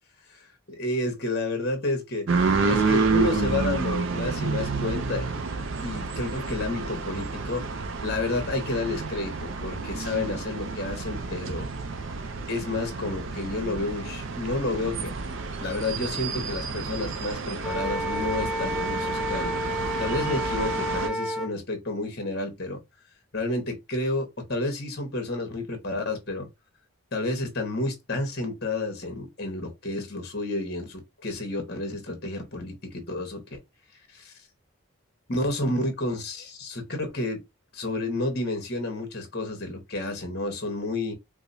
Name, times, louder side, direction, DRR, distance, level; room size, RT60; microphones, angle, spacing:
voice 1, 0.3-5.5 5.8-7.7 8.0-11.7 12.5-19.6 20.0-22.8 23.3-26.5 27.1-33.6 34.1-34.3 35.3-37.4 37.7-41.1, left 2 dB, 45° left, 1.2 m, -30 dB
sound 1, 2.3-21.1, right 4 dB, 60° right, 0.5 m, -30 dB
Wind instrument woodwind instrument, 17.6-21.5, equal, ahead, 0.3 m, -30 dB
4.7 x 2.1 x 2.6 m
head